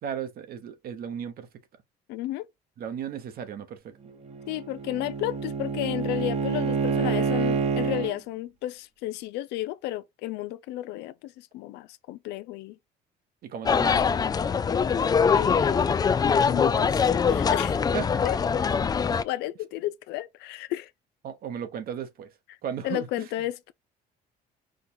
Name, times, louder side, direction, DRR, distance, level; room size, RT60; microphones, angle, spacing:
voice 1, 0.0-1.5 2.8-3.8 13.4-14.0 17.9-18.3 21.2-22.3 22.6-23.3, right 8 dB, 60° right, 1.1 m, -35 dB
voice 2, 2.1-2.5 4.5-12.8 15.3-15.9 16.2-17.8 18.2-18.4 19.2-20.9 22.5-22.6 22.8-23.7, left 15 dB, 85° left, 0.5 m, -33 dB
Bowed string instrument, 4.1-8.1, right 5 dB, 40° right, 1.0 m, -28 dB
sound 1, 13.7-19.2, left 6 dB, 25° left, 0.3 m, -23 dB
5.1 x 2.3 x 4.3 m
cardioid pair, 110°, 17 cm